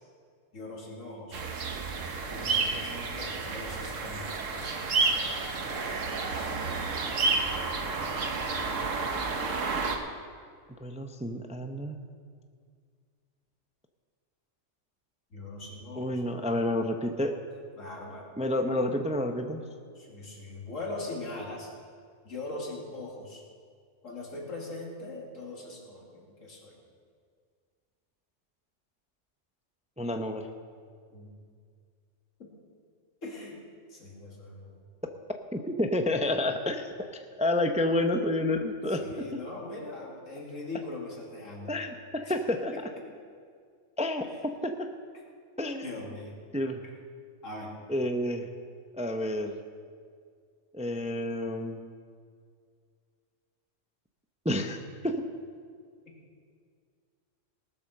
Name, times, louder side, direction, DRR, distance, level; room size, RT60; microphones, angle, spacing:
voice 1, 0.5-1.4 2.3-4.9 15.3-16.2 17.8-18.3 18.6-18.8 19.9-21.7 22.2-23.4 24.0-26.8 31.1-31.3 33.2-33.6 33.9-34.8 39.0-41.7 42.7-42.8 45.8-46.4 47.4-47.7, left 2 dB, 90° left, -2 dB, 2.8 m, -41 dB
sound 1, 1.3-10.0, right 4 dB, 80° right, 1.4 m, -30 dB
voice 2, 10.8-12.0 16.0-17.4 18.4-19.6 30.0-30.5 35.5-36.9 37.4-39.0 41.7-42.7 44.0-44.9 45.6-45.9 46.5-46.8 47.9-48.5 48.9-49.6 50.7-51.8 54.4-54.8 55.0-55.2, left 1 dB, 10° right, 5 dB, 0.5 m, -29 dB
19.0 x 7.2 x 6.5 m, 2.1 s
omnidirectional pair, 1.3 m